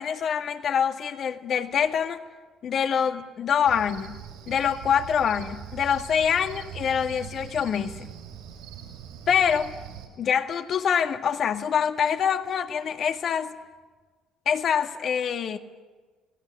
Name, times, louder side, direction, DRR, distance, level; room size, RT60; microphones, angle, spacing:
voice 1, 0.0-2.2 2.6-4.2 4.5-8.1 9.3-9.7 10.2-13.5 14.5-15.6, left 7 dB, 50° left, 6 dB, 2.0 m, -25 dB
Cricket, 3.6-10.1, right 9 dB, 70° right, 7.8 m, -42 dB
29.0 x 19.5 x 9.9 m, 1.3 s
hypercardioid pair, 55°, 0 cm